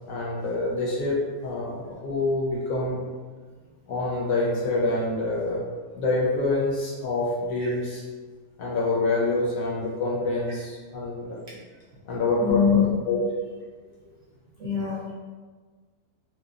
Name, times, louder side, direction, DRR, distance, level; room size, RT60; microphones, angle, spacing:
voice 1, 0.1-3.0 3.9-5.6 5.9-8.0 8.6-11.4 12.1-13.2, left 2 dB, 70° left, -5 dB, 0.9 m, -26 dB
voice 2, 12.4-12.9 14.6-15.1, left 7 dB, 65° right, -7 dB, 0.8 m, -23 dB
3.0 x 2.1 x 2.3 m, 1.5 s
omnidirectional pair, 1.7 m